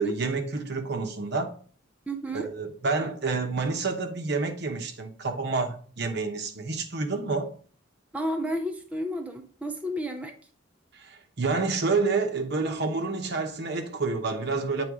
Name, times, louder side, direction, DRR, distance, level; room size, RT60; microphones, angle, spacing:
voice 1, 0.0-1.6 2.3-7.5 10.9-14.8, right 4 dB, 60° right, 0.9 m, -28 dB
voice 2, 2.1-2.5 8.1-10.3, equal, 5° right, 0.4 m, -31 dB
8.0 x 3.9 x 3.6 m
head